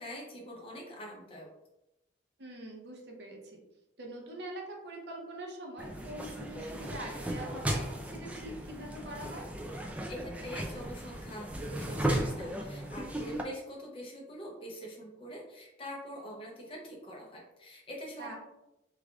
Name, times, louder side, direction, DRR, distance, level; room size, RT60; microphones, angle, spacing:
voice 1, 0.0-1.5 10.1-18.4, equal, 30° left, -2 dB, 0.7 m, -44 dB
voice 2, 2.4-3.6 4.0-9.5 18.2-18.4, right 1 dB, 60° right, 0 dB, 0.7 m, -44 dB
sound 1, 5.8-13.4, right 1 dB, 5° right, 0.3 m, -36 dB
3.3 x 2.4 x 3.4 m, 0.89 s
head